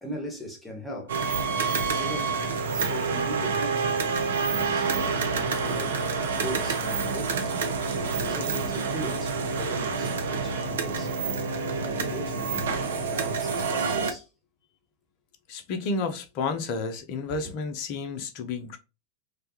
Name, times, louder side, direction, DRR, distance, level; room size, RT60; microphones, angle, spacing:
voice 1, 0.0-1.2 2.0-2.4 2.7-4.1 4.5-6.0 6.4-7.6 8.2-11.1 11.8-14.3 15.8-15.9 17.3-17.5, equal, 5° left, 1.0 m, -39 dB
sound 1, 1.1-14.1, right 5 dB, 65° right, 0.5 m, -28 dB
voice 2, 15.5-18.8, left 4 dB, 45° left, 0.5 m, -31 dB
3.2 x 2.3 x 2.7 m
figure-of-eight pair, 90°, 0 cm